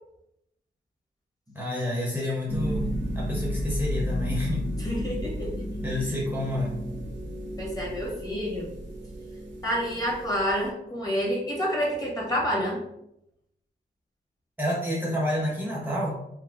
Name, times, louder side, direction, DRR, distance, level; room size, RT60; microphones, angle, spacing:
voice 1, 1.5-2.9 3.1-4.6 5.8-6.8 14.6-16.1, left 1 dB, 10° right, -5 dB, 0.6 m, -29 dB
sound 1, 2.5-10.7, equal, 80° right, 0.6 m, -33 dB
voice 2, 4.8-5.5 7.6-8.7 9.6-12.8, equal, 20° left, -3 dB, 0.8 m, -28 dB
2.7 x 2.5 x 3.4 m, 0.79 s
wide cardioid pair, 175°, 19 cm